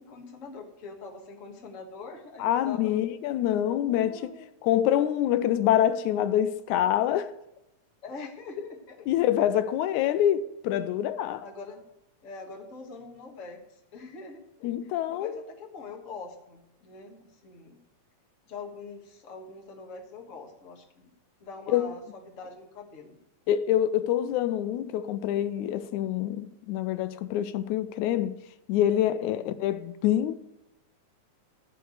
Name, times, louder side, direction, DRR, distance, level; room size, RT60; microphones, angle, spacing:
voice 1, 0.0-3.0 3.8-4.5 8.0-9.1 11.4-11.9 12.2-14.7 15.1-17.8 18.5-21.1 21.4-23.2 29.2-29.4, left 4 dB, 35° left, 1.4 m, -43 dB
voice 2, 2.4-4.3 4.6-7.3 9.1-11.4 14.6-15.4 21.7-21.9 23.5-28.4 28.7-30.4, left 11 dB, 85° left, 2.0 m, -26 dB
13.0 x 4.6 x 7.7 m
omnidirectional pair, 3.4 m